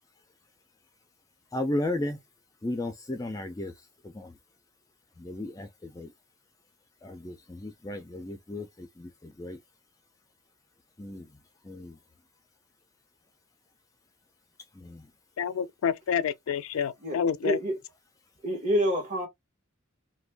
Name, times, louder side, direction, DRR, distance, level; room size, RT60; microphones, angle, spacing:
voice 1, 1.5-2.2 2.6-3.7 4.0-4.4 5.2-6.1 7.0-9.6 11.0-11.3 11.6-12.0 14.7-15.1, left 1 dB, 15° left, 0.3 m, -35 dB
voice 2, 15.4-17.6, left 7 dB, 85° left, 0.4 m, -28 dB
voice 3, 17.0-17.8 18.4-19.3, equal, 35° right, 1.2 m, -27 dB
2.5 x 2.2 x 3.3 m
head